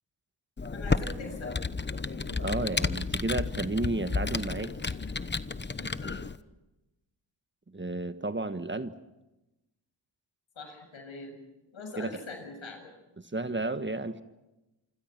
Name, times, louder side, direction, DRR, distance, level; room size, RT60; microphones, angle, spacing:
Computer keyboard, 0.6-6.4, left 4 dB, 25° left, 1.0 m, -32 dB
voice 1, 0.7-1.5 1.9-2.4 4.5-5.1 5.8-6.2 10.6-11.4 11.7-12.9, left 3 dB, 80° left, 4 dB, 7.3 m, -43 dB
voice 2, 2.4-4.7 7.7-8.9 12.0-12.1 13.2-14.2, right 2 dB, 25° right, 10 dB, 1.4 m, -32 dB
27.0 x 25.5 x 6.0 m, 1.0 s
cardioid pair, 70°, 47 cm